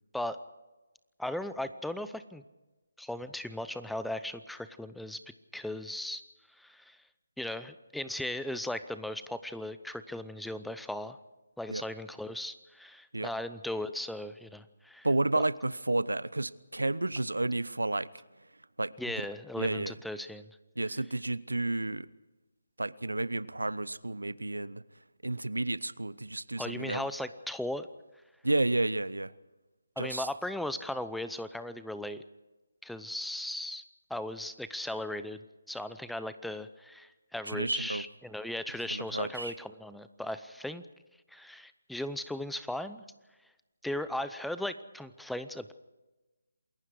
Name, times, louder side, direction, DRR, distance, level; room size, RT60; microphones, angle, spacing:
voice 1, 1.2-2.4 3.0-5.2 5.5-6.2 6.5-7.0 7.4-11.2 11.6-15.1 19.0-20.5 26.6-27.9 30.0-32.2 32.8-33.8 34.1-35.4 35.7-40.8 41.3-43.0 43.8-45.7, left 1 dB, ahead, 12 dB, 0.7 m, -37 dB
voice 2, 15.0-18.1 18.8-19.1 19.6-19.9 20.8-22.1 22.8-24.8 25.2-27.1 28.4-29.3 30.0-30.3 37.4-38.0 38.9-39.6, right 2 dB, 85° right, 19 dB, 0.9 m, -31 dB
28.0 x 21.5 x 4.8 m, 1.1 s
figure-of-eight pair, 150°, 0 cm